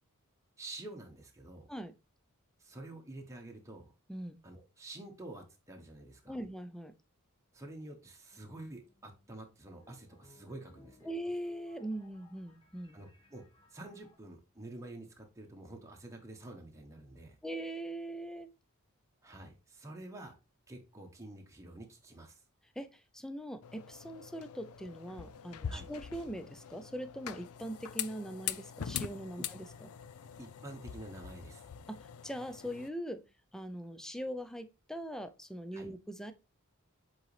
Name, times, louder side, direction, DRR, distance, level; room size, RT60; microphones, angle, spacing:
voice 1, 0.6-1.7 2.6-3.9 4.4-6.4 7.5-11.1 12.9-13.4 13.7-17.4 19.2-20.4 20.7-22.4 25.7-25.9 30.4-31.6 35.7-35.9, right 2 dB, 15° right, 1 dB, 1.1 m, -48 dB
voice 2, 6.3-6.9 11.0-13.0 17.4-18.5 22.8-29.9 31.9-33.2 33.5-36.3, right 1 dB, 5° left, 10 dB, 0.5 m, -41 dB
sound 1, 8.3-14.2, left 1 dB, 20° left, 1.3 m, -62 dB
sound 2, 23.6-32.9, left 9 dB, 75° left, 0.4 m, -43 dB
7.7 x 3.9 x 3.2 m, 0.29 s
head